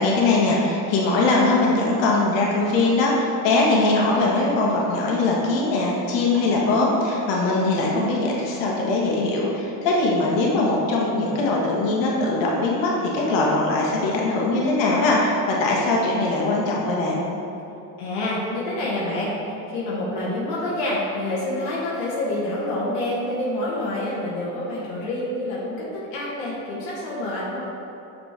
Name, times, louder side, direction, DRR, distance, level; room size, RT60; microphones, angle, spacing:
voice 1, 0.0-17.2, left 2 dB, 65° left, -3 dB, 1.4 m, -21 dB
voice 2, 18.0-19.3 19.7-27.7, left 1 dB, 80° left, -6 dB, 1.3 m, -27 dB
5.8 x 4.3 x 4.4 m, 2.9 s
supercardioid pair, 85°, 47 cm